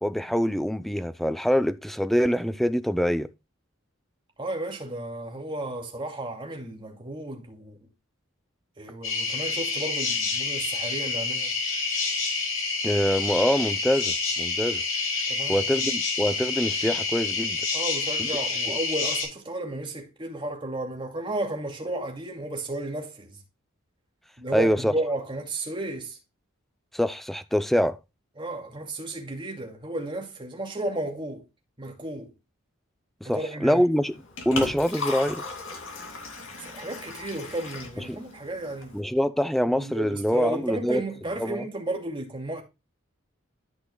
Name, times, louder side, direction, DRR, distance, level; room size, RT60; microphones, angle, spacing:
voice 1, 0.0-3.3 12.8-14.8 15.5-17.6 18.2-18.3 18.7-18.8 24.5-24.9 26.9-28.0 33.2-34.2 34.5-35.4 38.1-38.2 38.9-41.0 41.4-41.6, equal, ahead, 0.5 m, -25 dB
voice 2, 4.4-7.9 8.8-11.5 15.3-15.8 17.7-23.4 24.4-26.2 28.4-31.4 31.8-32.3 33.2-33.8 36.6-39.0 39.7-42.6, right 1 dB, 25° right, 2.4 m, -33 dB
sound 1, 9.0-19.3, left 4 dB, 85° left, 5.1 m, -28 dB
Liquid, 34.0-39.0, left 3 dB, 65° left, 2.4 m, -37 dB
13.5 x 6.1 x 2.2 m
head